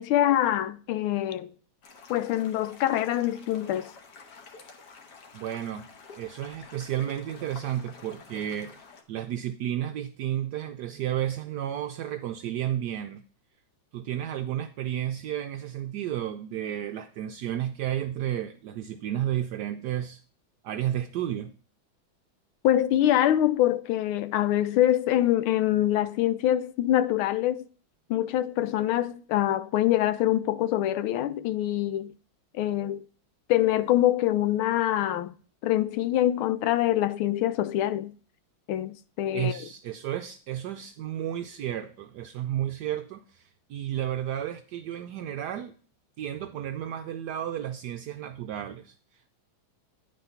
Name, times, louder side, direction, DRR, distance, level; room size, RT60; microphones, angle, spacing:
voice 1, 0.0-1.5 2.1-3.9 22.6-27.6 28.1-32.1 32.5-33.0 33.5-35.3 35.6-38.1 38.7-39.6, left 13 dB, 90° left, 1.5 m, -25 dB
sound 1, 1.8-9.0, left 4 dB, 55° left, 1.7 m, -49 dB
voice 2, 5.3-5.9 6.2-8.7 9.1-13.2 13.9-20.2 20.6-21.5 39.3-43.4 43.7-45.7 46.2-48.9, right 11 dB, 80° right, 0.9 m, -32 dB
9.8 x 4.2 x 5.6 m
omnidirectional pair, 2.2 m